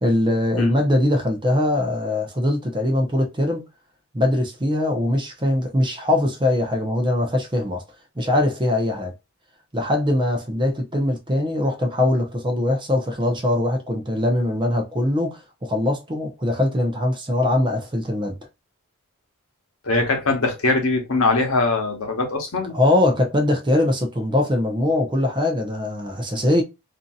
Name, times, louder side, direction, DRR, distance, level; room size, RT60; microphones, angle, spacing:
voice 1, 0.0-3.6 4.1-7.8 8.2-9.1 9.7-18.4 22.7-26.6, left 1 dB, 20° right, 0.6 m, -22 dB
voice 2, 19.8-22.8, left 3 dB, 75° left, 0.9 m, -21 dB
2.7 x 2.6 x 2.3 m
head